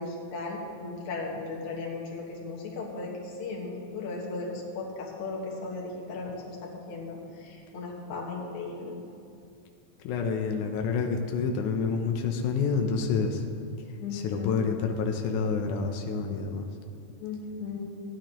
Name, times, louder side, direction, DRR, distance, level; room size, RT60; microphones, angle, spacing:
voice 1, 0.0-9.0 14.0-14.5 17.2-17.8, left 3 dB, 60° left, -2 dB, 2.5 m, -36 dB
voice 2, 10.0-13.4 14.1-16.7, left 5 dB, 85° left, 3 dB, 1.7 m, -28 dB
16.0 x 9.9 x 3.0 m, 2.5 s
omnidirectional pair, 4.4 m